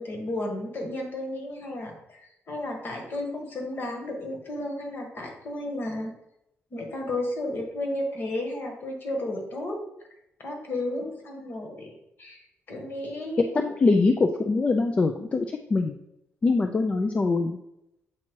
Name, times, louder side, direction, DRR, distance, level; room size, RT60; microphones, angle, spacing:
voice 1, 0.0-6.1 6.7-9.8 10.4-11.9 12.2-13.6, left 1 dB, 45° left, 2 dB, 1.3 m, -33 dB
voice 2, 13.5-16.0 16.4-17.6, left 3 dB, 25° left, 5 dB, 0.3 m, -23 dB
7.5 x 2.9 x 4.5 m, 0.83 s
cardioid pair, 145°, 5 cm